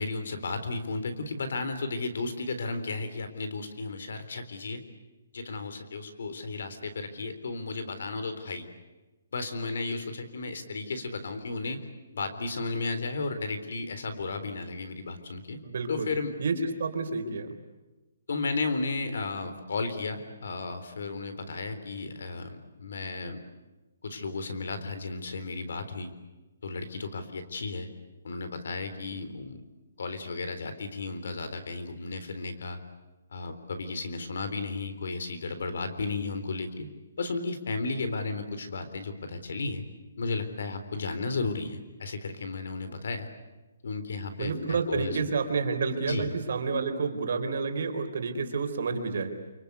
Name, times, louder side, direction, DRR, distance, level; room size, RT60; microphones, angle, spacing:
voice 1, 0.0-4.8 5.3-8.7 9.3-11.9 12.1-15.6 15.9-16.4 18.3-23.4 24.0-26.1 26.6-27.9 28.2-29.6 30.0-32.8 33.3-36.9 37.2-39.8 40.2-43.3 43.8-45.2 46.1-46.3, left 3 dB, 60° left, 10 dB, 3.8 m, -34 dB
voice 2, 15.6-16.1 16.4-17.5 44.4-49.3, right 4 dB, 50° right, 5 dB, 3.9 m, -29 dB
28.5 x 25.0 x 8.3 m, 1.1 s
hypercardioid pair, 175°, 0 cm